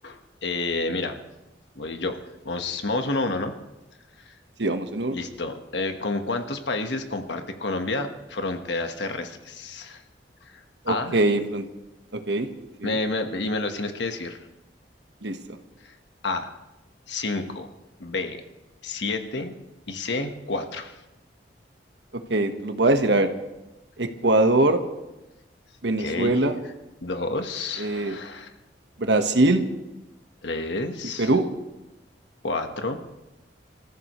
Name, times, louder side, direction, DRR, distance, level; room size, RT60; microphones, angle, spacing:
voice 1, 0.0-1.2 1.7-2.2 2.4-3.5 4.3-4.4 5.1-10.0 10.5-11.2 12.8-14.4 15.8-15.9 16.2-16.5 17.1-17.7 18.0-18.4 18.8-19.5 19.9-21.0 26.0-26.4 27.0-28.5 30.4-31.3 32.4-33.0, left 2 dB, 80° left, 6 dB, 1.4 m, -29 dB
voice 2, 4.6-5.1 10.8-11.6 12.3-12.5 12.8-13.0 15.2-15.4 22.3-23.3 24.0-24.8 25.8-26.6 27.8-28.1 29.0-29.6 31.2-31.4, right 2 dB, 75° right, 6 dB, 1.4 m, -22 dB
27.0 x 14.5 x 3.2 m, 0.99 s
head